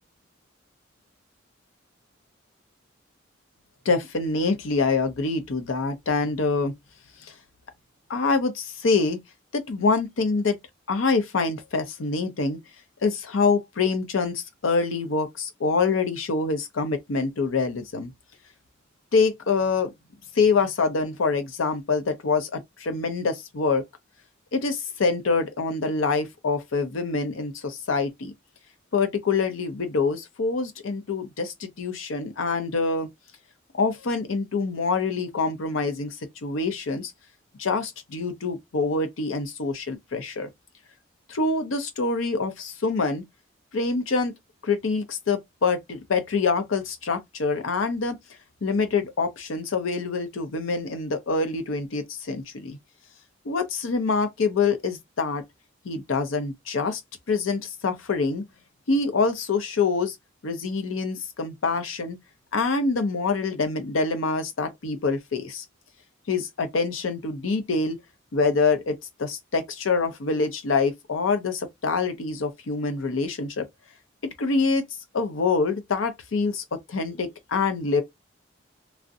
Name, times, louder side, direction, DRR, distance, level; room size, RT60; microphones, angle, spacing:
voice 1, 3.9-6.7 8.1-9.2 9.5-10.6 10.9-12.6 13.0-18.1 19.1-19.9 20.3-23.8 24.5-28.3 28.9-33.1 33.8-36.2 36.4-37.1 37.6-40.5 41.3-43.2 43.7-44.3 44.6-48.2 48.6-52.8 53.5-55.4 55.9-57.0 57.3-58.4 58.9-60.1 60.4-62.2 62.5-65.6 66.3-68.0 68.3-73.7 74.4-74.8 75.1-78.0, left 4 dB, 85° left, 0.6 m, -25 dB
2.4 x 2.1 x 2.6 m
head